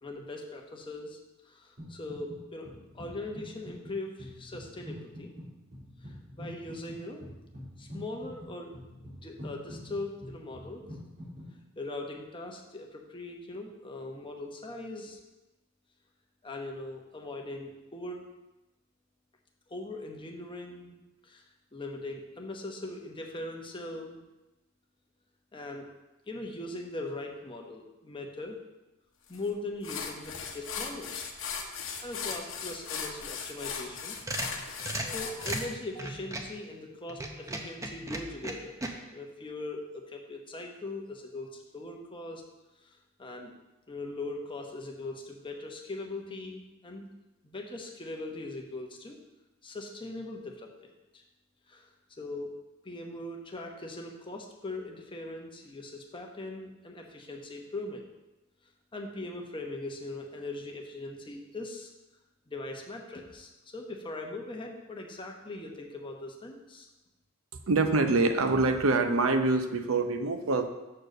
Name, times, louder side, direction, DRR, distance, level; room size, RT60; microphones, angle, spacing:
voice 1, 0.0-1.2 1.4-5.3 6.0-7.2 7.8-10.8 11.8-15.2 16.4-18.3 19.7-21.0 21.2-21.4 21.7-24.2 25.5-25.9 26.3-28.6 29.3-31.1 32.0-34.2 34.6-38.7 39.1-42.4 42.8-43.5 43.9-47.1 47.4-49.2 49.6-51.2 51.7-51.9 52.2-52.5 52.8-58.1 58.9-61.9 62.5-66.9, left 2 dB, 25° left, 1 dB, 1.0 m, -40 dB
sound 1, 1.8-2.4 2.6-11.5, equal, 45° right, 3.0 m, -45 dB
sound 2, 29.3-29.5 29.8-35.7, left 6 dB, 65° left, 0.9 m, -38 dB
sound 3, 33.9-36.6 37.1-38.9, right 1 dB, 15° right, 0.7 m, -36 dB
voice 2, 67.5-70.7, right 3 dB, 90° right, 7 dB, 0.7 m, -25 dB
6.6 x 4.5 x 6.4 m, 1.0 s
head